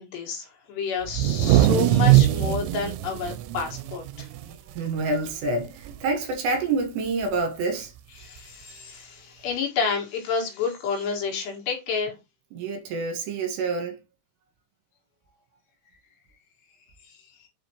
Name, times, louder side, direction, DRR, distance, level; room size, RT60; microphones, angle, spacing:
voice 1, 0.0-4.3 8.2-12.2 17.0-17.2, left 5 dB, 70° left, 3.6 m, -30 dB
sound 1, 1.1-4.8 5.1-5.3 5.6-6.1 7.2-7.3 8.4-8.5, right 13 dB, 90° right, 3.0 m, -21 dB
voice 2, 4.7-7.9 12.5-14.0, right 3 dB, 75° right, 3.5 m, -27 dB
7.2 x 5.1 x 2.9 m
omnidirectional pair, 5.3 m